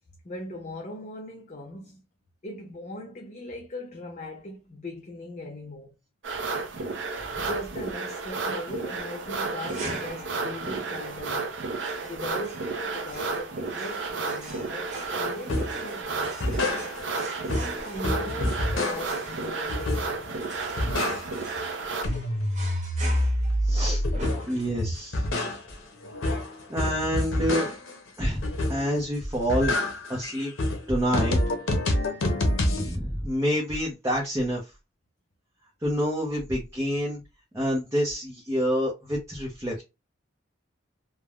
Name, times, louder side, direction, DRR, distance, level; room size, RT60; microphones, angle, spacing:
voice 1, 0.2-2.0 2.4-5.9 7.4-11.6 12.0-16.8 17.5-20.2 24.8-24.9, left 1 dB, 35° left, 0.5 m, -39 dB
sound 1, 6.2-22.0, right 3 dB, 70° right, 0.6 m, -32 dB
sound 2, 9.7-25.0, right 2 dB, 35° right, 0.9 m, -44 dB
sound 3, 15.5-15.8 16.2-17.2 17.5-19.3 19.7-20.3 20.6-21.6 21.9-24.6 25.0-28.0 28.4-29.0 29.3-32.9, left 1 dB, 85° left, 0.7 m, -27 dB
voice 2, 23.7-24.0 24.5-25.2 26.7-27.7 28.2-28.4 28.7-30.5 30.9-31.4 32.7-34.6 35.8-37.2 37.5-39.8, equal, 15° right, 0.6 m, -27 dB
3.3 x 2.1 x 2.3 m
head